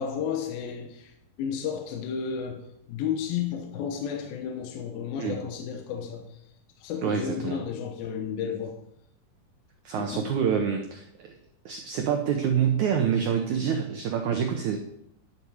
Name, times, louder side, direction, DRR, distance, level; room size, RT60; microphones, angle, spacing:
voice 1, 0.0-6.4 6.8-8.8 9.9-10.3, left 7 dB, 75° left, 4 dB, 2.6 m, -32 dB
voice 2, 7.0-7.6 9.8-11.3 11.6-14.8, right 7 dB, 80° right, 4 dB, 1.7 m, -27 dB
11.0 x 7.3 x 4.8 m, 0.79 s
omnidirectional pair, 4.6 m